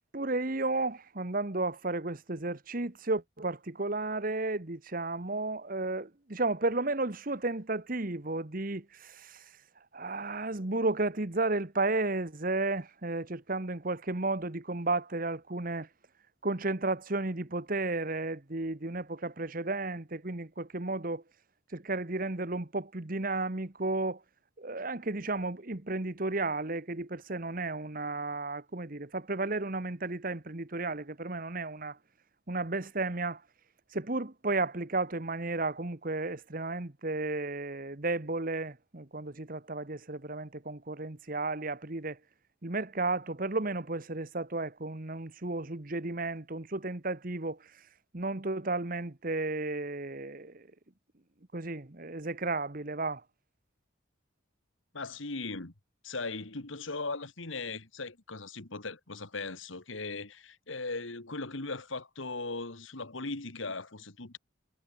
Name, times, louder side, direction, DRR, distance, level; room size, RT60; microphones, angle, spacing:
voice 1, 0.1-9.4 9.9-15.9 16.4-21.2 21.7-24.2 24.6-32.0 32.5-33.4 33.9-42.2 42.6-47.7 48.1-50.7 51.5-53.2, right 2 dB, 45° right, 1.3 m, -33 dB
voice 2, 54.9-55.7 56.0-64.4, left 3 dB, 80° left, 2.2 m, -38 dB
head